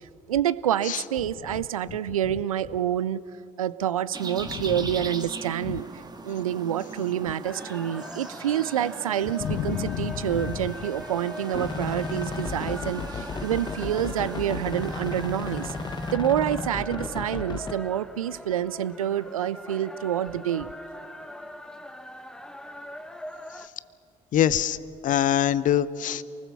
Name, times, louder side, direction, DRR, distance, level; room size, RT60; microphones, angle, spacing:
voice 1, 0.3-3.2 3.6-5.9 6.2-15.7 16.1-20.7, right 11 dB, 85° right, 18 dB, 0.5 m, -27 dB
sound 1, 4.1-16.2, right 3 dB, 25° right, 1.9 m, -41 dB
sound 2, 7.4-23.7, left 1 dB, 5° left, 1.1 m, -42 dB
voice 2, 9.4-10.4 12.7-12.8 24.3-24.8 25.0-26.2, left 10 dB, 50° left, 17 dB, 0.8 m, -24 dB
sound 3, 11.5-17.7, left 4 dB, 25° left, 1.2 m, -34 dB
28.0 x 20.0 x 7.0 m, 2.4 s
figure-of-eight pair, 50°, 17 cm